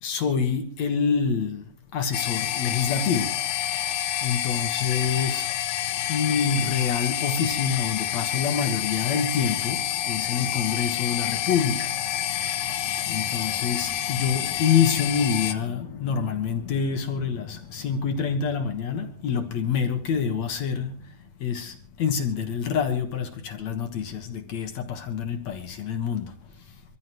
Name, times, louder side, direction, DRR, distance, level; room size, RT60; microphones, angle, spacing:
voice 1, 0.0-5.5 5.9-26.8, left 6 dB, 55° left, 2.3 m, -27 dB
sound 1, 2.1-15.5, left 11 dB, 75° left, 2.8 m, -28 dB
25.5 x 14.5 x 3.1 m
omnidirectional pair, 4.2 m